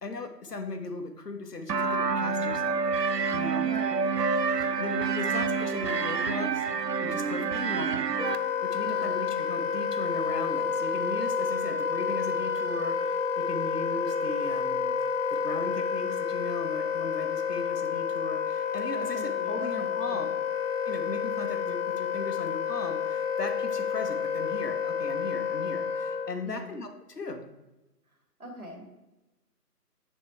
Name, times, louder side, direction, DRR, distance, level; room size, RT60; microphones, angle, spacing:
voice 1, 0.0-2.8 3.3-3.7 4.6-6.6 7.0-8.1 8.3-15.0 15.3-20.3 20.9-27.4, left 3 dB, 75° left, 5 dB, 1.1 m, -38 dB
sound 1, 1.7-8.4, right 5 dB, 85° right, 0.6 m, -28 dB
voice 2, 3.6-4.0 8.8-9.3 18.9-20.3 26.4-26.8 28.4-28.9, right 1 dB, 60° right, 1 dB, 1.9 m, -42 dB
Wind instrument woodwind instrument, 8.2-26.4, left 6 dB, 55° left, 0.7 m, -30 dB
6.6 x 4.1 x 4.5 m, 0.99 s
figure-of-eight pair, 155°, 48 cm